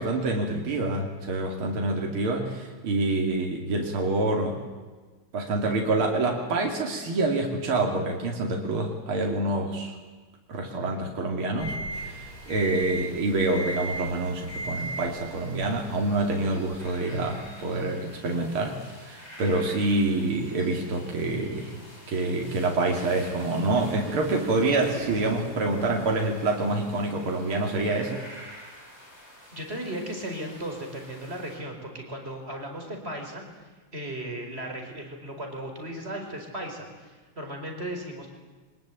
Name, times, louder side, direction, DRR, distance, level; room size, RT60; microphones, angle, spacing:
voice 1, 0.0-4.6 5.3-9.9 10.5-21.8 22.1-28.2, right 2 dB, 75° right, 1 dB, 3.4 m, -27 dB
sound 1, 11.6-17.6, right 2 dB, 90° left, 6.6 m, -38 dB
sound 2, 11.9-31.6, equal, 20° left, 7.4 m, -49 dB
sound 3, 23.7-27.0, right 5 dB, 50° right, 2.5 m, -41 dB
voice 2, 29.5-33.4 33.9-38.3, right 1 dB, 25° right, 2 dB, 4.9 m, -36 dB
24.0 x 20.0 x 9.3 m, 1.3 s
omnidirectional pair, 2.4 m